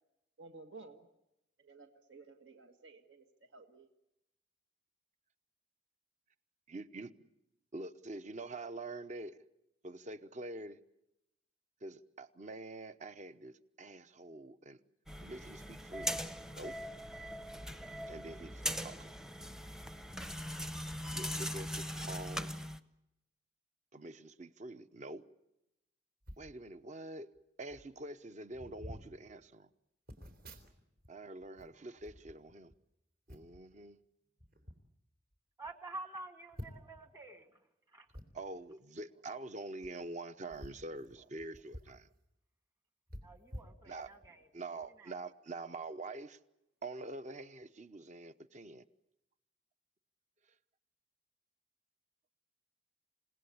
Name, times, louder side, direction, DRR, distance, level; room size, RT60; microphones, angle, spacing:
voice 1, 0.4-1.1 1.6-3.9, right 3 dB, 80° right, 4 dB, 1.8 m, -54 dB
voice 2, 6.7-7.3 7.7-9.4 9.8-10.8 11.8-14.8 15.2-16.2 16.5-16.8 18.1-19.1 21.1-22.5 23.9-25.2 26.4-27.3 27.6-29.7 31.1-32.7 33.3-34.0 38.3-42.1 43.8-44.1 44.5-46.4 46.8-48.8, right 2 dB, 40° right, 12 dB, 0.9 m, -46 dB
sound 1, 15.1-22.8, equal, 5° right, 0.8 m, -40 dB
sound 2, 26.2-26.5 27.4-27.5 27.7-27.9 28.5-29.1 30.1-31.1 31.4-32.8 33.3-33.6 34.4-34.8 35.3-35.4 35.7-35.8 36.5-37.0 38.1-38.3 39.7-39.9 40.5-42.0 42.3-42.4 43.1-44.3 44.8-44.9, equal, 55° right, 3.7 m, -50 dB
voice 3, 35.6-37.5 37.9-38.1 43.2-44.5 45.0-45.1, right 2 dB, 20° right, 7 dB, 1.5 m, -48 dB
28.5 x 17.5 x 8.5 m, 0.90 s
head